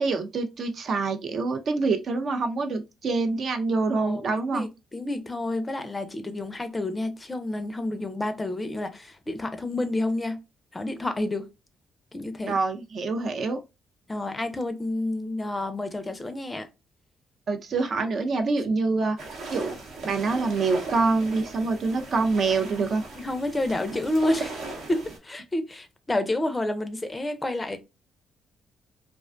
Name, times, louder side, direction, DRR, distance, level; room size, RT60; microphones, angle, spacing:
voice 1, 0.0-4.7 12.5-13.6 17.5-19.2 19.5-19.8 20.0-23.0, right 3 dB, 55° right, 0.4 m, -26 dB
voice 2, 4.0-10.4 10.7-11.5 12.1-12.6 14.1-16.7 23.2-24.5 24.9-27.8, left 1 dB, 20° left, 0.4 m, -29 dB
sound 1, 19.2-25.2, right 3 dB, 80° right, 0.8 m, -38 dB
2.4 x 2.2 x 2.4 m
cardioid pair, 90°, 0 cm